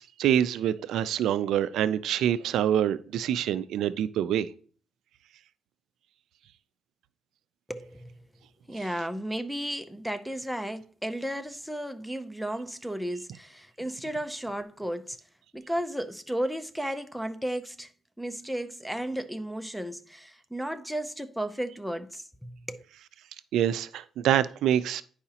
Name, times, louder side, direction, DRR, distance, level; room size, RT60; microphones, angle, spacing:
voice 1, 0.0-4.5 23.5-25.0, right 10 dB, 80° right, 0.3 m, -26 dB
voice 2, 7.7-8.1 8.7-15.2 15.5-17.9 18.2-22.8, right 1 dB, ahead, 0.5 m, -34 dB
10.0 x 4.8 x 2.8 m
cardioid pair, 140°, 0 cm